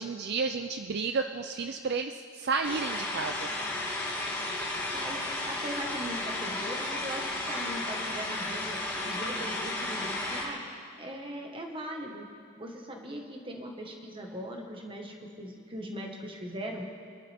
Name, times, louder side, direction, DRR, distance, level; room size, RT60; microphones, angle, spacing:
voice 1, 0.0-3.5, right 4 dB, 55° right, 7 dB, 0.4 m, -32 dB
sound 1, 2.6-10.4, left 2 dB, 15° left, 2.8 m, -33 dB
voice 2, 4.8-8.8 9.0-10.6 11.0-12.2 12.6-16.8, equal, 25° right, 1 dB, 1.6 m, -40 dB
25.5 x 11.5 x 3.6 m, 2.3 s
head